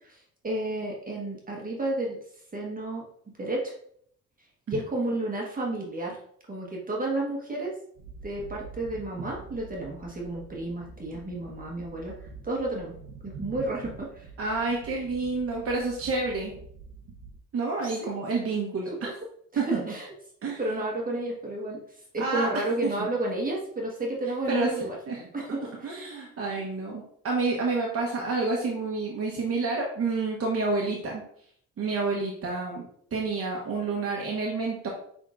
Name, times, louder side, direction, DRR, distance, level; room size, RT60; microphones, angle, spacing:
voice 1, 0.0-2.2 2.5-3.0 3.4-3.7 4.7-6.2 6.5-7.7 8.2-12.9 13.2-14.3 18.0-18.2 18.9-19.1 19.5-20.1 20.6-21.8 22.1-25.0 25.3-25.7, right 2 dB, 30° right, -2 dB, 1.3 m, -31 dB
sound 1, 7.9-17.4, right 4 dB, 80° right, 0.7 m, -46 dB
voice 2, 14.4-16.5 17.5-18.9 19.6-19.9 20.4-20.6 22.2-22.5 22.8-22.9 24.5-25.2 25.8-31.2 31.8-32.8 33.1-34.9, right 3 dB, 50° right, -1 dB, 1.0 m, -29 dB
5.8 x 3.6 x 2.5 m, 0.65 s
cardioid pair, 90°, 30 cm